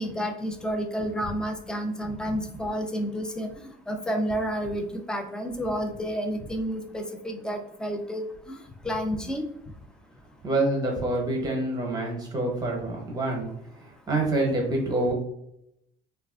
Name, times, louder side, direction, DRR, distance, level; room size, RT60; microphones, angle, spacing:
voice 1, 0.0-8.6 8.8-9.4, equal, 5° left, 4 dB, 0.3 m, -30 dB
voice 2, 10.4-13.5 14.1-15.1, right 2 dB, 20° right, -1 dB, 0.9 m, -26 dB
3.2 x 2.4 x 2.3 m, 0.77 s
cardioid pair, 140°, 19 cm